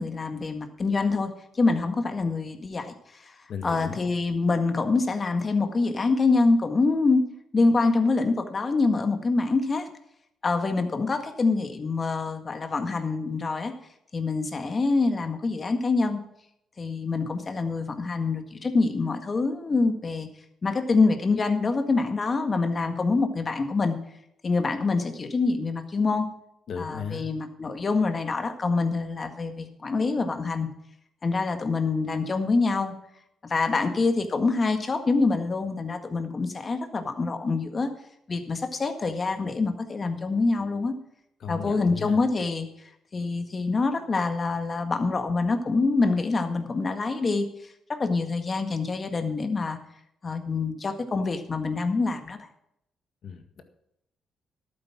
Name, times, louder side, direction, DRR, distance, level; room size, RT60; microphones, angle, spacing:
voice 1, 0.0-3.3 3.6-7.2 7.5-9.9 10.4-13.7 14.1-16.2 16.8-20.3 20.6-24.0 24.4-26.3 26.8-30.7 31.2-32.9 33.4-37.9 38.3-40.9 41.5-42.7 43.1-47.5 47.9-49.8 50.2-52.4, left 3 dB, 35° left, 7 dB, 1.8 m, -25 dB
voice 2, 3.5-4.0 26.7-27.3 41.4-42.2 53.2-53.6, left 6 dB, 60° left, 7 dB, 1.8 m, -36 dB
12.0 x 9.1 x 6.1 m, 0.77 s
cardioid pair, 90°, 0 cm